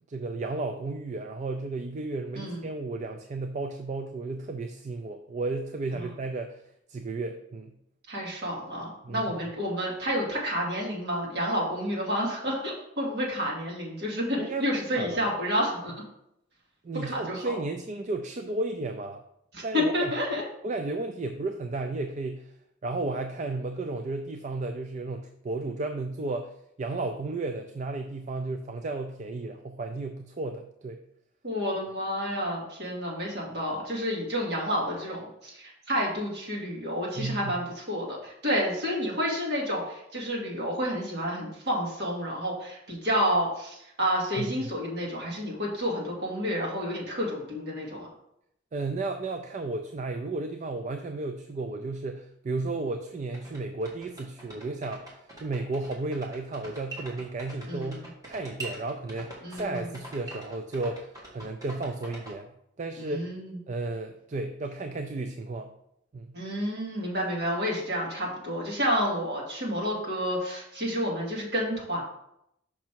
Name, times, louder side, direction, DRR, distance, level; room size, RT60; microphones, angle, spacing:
voice 1, 0.1-6.6 6.9-7.7 9.0-9.3 14.4-14.7 15.0-15.2 16.8-19.2 19.6-20.1 20.6-22.5 22.8-26.5 26.8-31.0 37.2-37.5 44.4-44.6 48.7-62.5 62.8-63.2 63.7-65.7 66.1-66.4, right 2 dB, 40° right, 6 dB, 0.4 m, -33 dB
voice 2, 8.1-15.9 17.0-17.4 19.5-20.4 31.4-48.1 57.7-58.1 59.4-59.9 63.0-63.6 66.3-72.0, equal, 60° right, -3 dB, 2.3 m, -30 dB
sound 1, 53.1-53.2 53.3-62.3, right 2 dB, 20° right, 1.7 m, -43 dB
6.0 x 5.3 x 4.6 m, 0.77 s
head